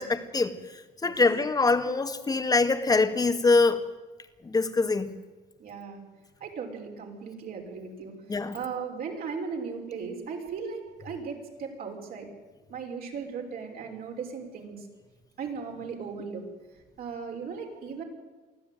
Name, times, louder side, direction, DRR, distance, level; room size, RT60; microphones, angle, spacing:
voice 1, 0.0-3.8 4.4-5.1 8.3-8.6, left 3 dB, 20° left, 9 dB, 1.9 m, -24 dB
voice 2, 5.6-6.0 6.4-12.3 12.7-14.9 15.4-16.4 16.7-18.0, right 5 dB, 60° right, 1 dB, 5.5 m, -37 dB
24.0 x 15.0 x 9.3 m, 1.3 s
cardioid pair, 110°, 17 cm